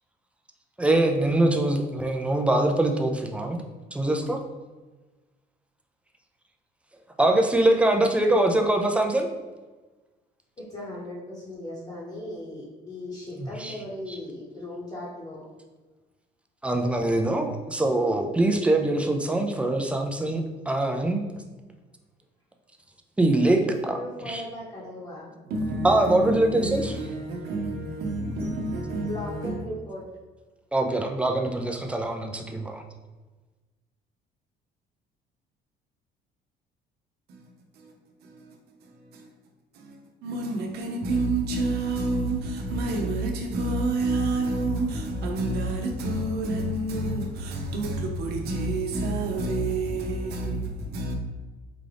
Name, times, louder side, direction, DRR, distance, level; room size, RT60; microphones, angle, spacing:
voice 1, 0.8-3.6 3.9-4.4 7.2-9.3 13.3-13.8 14.1-14.2 16.6-21.2 23.2-23.6 23.9-24.0 24.3-24.4 25.8-26.9 30.7-32.8, right 1 dB, 5° right, 0.4 m, -23 dB
voice 2, 10.6-15.4 23.5-25.3 29.0-30.1, left 1 dB, 25° left, 0.9 m, -37 dB
voice 3, 25.5-29.6 37.3-37.4 37.8-37.9 38.2-38.6 38.8-39.3 39.7-51.2, right 2 dB, 75° right, 0.7 m, -29 dB
3.7 x 2.5 x 3.4 m
cardioid pair, 110°, 17 cm